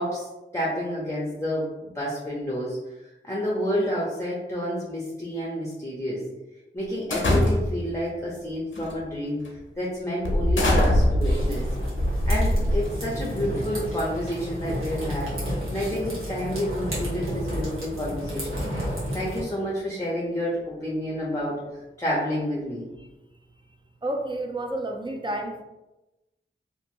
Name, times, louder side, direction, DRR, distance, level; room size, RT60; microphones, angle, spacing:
voice 1, 0.0-2.8 3.2-6.2 6.7-9.4 9.8-11.6 12.3-15.3 15.7-21.6 22.0-22.9, equal, 15° left, -6 dB, 0.7 m, -29 dB
sound 1, 7.1-7.9 8.7-9.0 9.4-9.6 10.2-13.1, left 1 dB, 70° left, 0.7 m, -22 dB
sound 2, 11.2-19.4, equal, 85° right, 1.0 m, -32 dB
voice 2, 24.0-25.6, right 1 dB, 25° right, 2 dB, 0.5 m, -30 dB
2.9 x 2.6 x 2.6 m, 1.0 s
wide cardioid pair, 45°, 21 cm